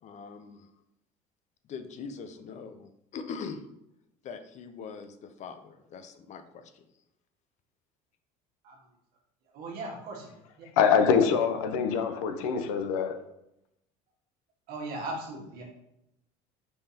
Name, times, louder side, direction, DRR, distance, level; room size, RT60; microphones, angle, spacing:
voice 1, 0.0-0.7 1.7-3.6 4.2-6.9, left 5 dB, 45° left, 0.5 m, -42 dB
voice 2, 9.5-10.7 14.7-15.6, right 2 dB, 65° right, 1.5 m, -38 dB
voice 3, 10.8-13.2, left 6 dB, 90° left, 0.6 m, -24 dB
5.5 x 3.3 x 2.8 m
supercardioid pair, 105°, 17 cm